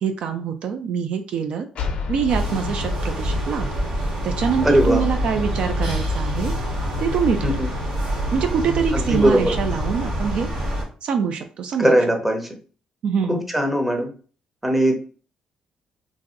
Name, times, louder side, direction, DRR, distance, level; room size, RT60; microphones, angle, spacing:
voice 1, 0.0-1.7 2.1-3.7 4.2-6.5 7.0-7.7 8.3-10.5 11.0-12.0 13.0-13.4, right 6 dB, 65° right, 7 dB, 0.3 m, -24 dB
sound 1, 1.7-5.3, left 5 dB, 60° left, 0.5 m, -33 dB
sound 2, 2.3-10.8, equal, 80° right, 1.5 m, -25 dB
voice 2, 4.6-5.0 7.4-7.7 8.9-9.6 11.8-12.5 13.3-14.1 14.6-14.9, equal, 10° right, 3 dB, 0.6 m, -19 dB
3.0 x 2.6 x 2.4 m, 0.39 s
cardioid pair, 110°, 2 cm